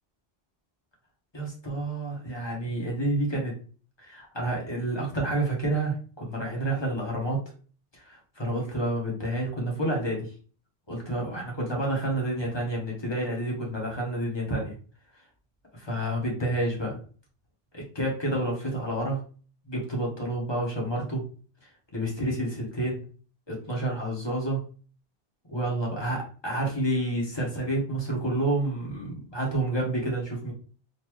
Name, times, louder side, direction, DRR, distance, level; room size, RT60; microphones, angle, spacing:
voice 1, 1.3-3.5 4.0-7.4 7.9-10.3 10.9-14.7 15.7-17.0 17.7-19.2 19.7-21.2 21.9-23.0 23.5-24.6 25.5-30.5, right 1 dB, 25° left, -2 dB, 1.2 m, -29 dB
4.0 x 2.6 x 3.0 m, 0.41 s
omnidirectional pair, 1.1 m